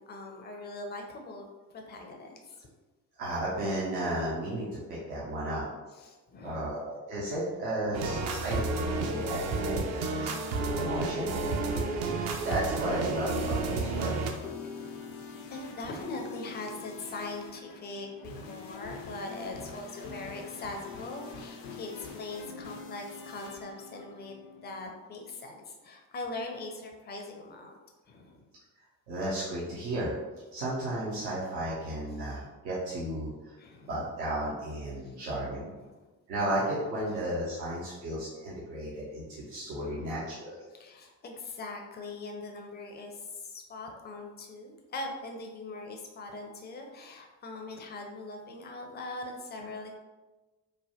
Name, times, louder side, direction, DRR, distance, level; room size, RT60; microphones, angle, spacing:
voice 1, 0.0-2.7 6.0-6.8 9.1-9.2 9.6-10.2 11.6-12.0 13.5-13.8 14.6-14.8 15.5-27.8 28.1-28.5 32.1-32.3 33.6-33.9 35.0-35.3 35.8-36.1 37.7-37.9 39.7-40.2 40.7-50.0, left 2 dB, 20° left, 2 dB, 0.4 m, -42 dB
voice 2, 3.2-5.6 6.4-10.3 10.8-11.3 12.4-14.2 29.1-30.1 30.5-33.5 33.8-35.7 36.3-40.6, right 1 dB, 75° right, -7 dB, 0.7 m, -34 dB
sound 1, 7.9-14.3, right 3 dB, 35° right, 0.4 m, -31 dB
sound 2, 12.0-24.8, left 5 dB, 70° left, 0.6 m, -44 dB
3.2 x 2.1 x 2.7 m, 1.2 s
figure-of-eight pair, 40°, 49 cm